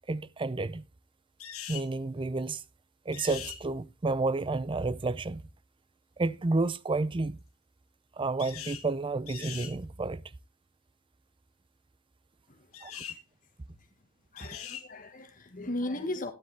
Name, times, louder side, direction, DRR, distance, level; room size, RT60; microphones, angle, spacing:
voice 1, 0.1-0.8 1.7-2.6 3.1-5.4 6.2-7.4 8.2-10.2 12.8-12.9 14.4-14.5, right 3 dB, 25° right, 0.5 m, -30 dB
sound 1, 1.4-1.9 3.1-3.6 8.4-8.9 9.3-9.7 12.7-13.2 14.4-14.9, left 10 dB, 90° left, 1.7 m, -41 dB
voice 2, 12.5-13.2 13.7-13.9 14.3-16.3, left 1 dB, 40° left, 1.5 m, -37 dB
12.5 x 10.0 x 3.4 m
head